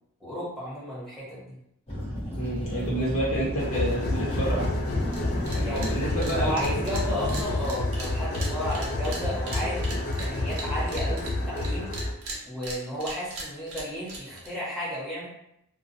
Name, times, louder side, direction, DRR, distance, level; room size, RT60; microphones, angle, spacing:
voice 1, 0.2-1.6 5.5-11.9 12.4-15.3, equal, ahead, -11 dB, 1.0 m, -33 dB
sound 1, 1.9-7.4, equal, 25° left, 0.7 m, -33 dB
voice 2, 2.4-4.7 5.7-6.5, right 1 dB, 75° left, -6 dB, 1.2 m, -29 dB
sound 2, 3.6-12.1, left 2 dB, 45° left, 0.3 m, -29 dB
sound 3, 5.1-5.2 5.5-5.9 6.2-11.7 11.9-14.5, right 2 dB, 70° right, 0.6 m, -38 dB
2.3 x 2.2 x 2.6 m, 0.76 s
head